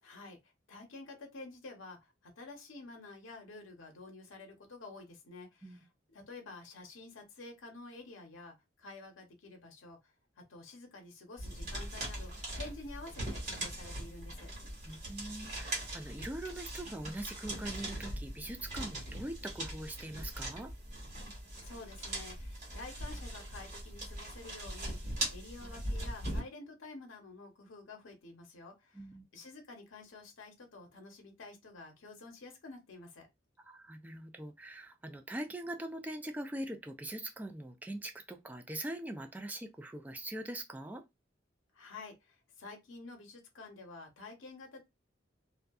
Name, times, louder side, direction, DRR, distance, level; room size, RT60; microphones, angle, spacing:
voice 1, 0.0-10.1 10.5-14.5 21.6-29.1 29.3-33.3 41.7-44.9, left 3 dB, 80° left, 0.8 m, -50 dB
sound 1, 11.4-26.4, right 1 dB, 40° right, 1.3 m, -41 dB
voice 2, 14.8-20.7 28.9-29.3 33.6-41.0, right 1 dB, 10° right, 0.3 m, -42 dB
2.6 x 2.3 x 2.3 m
head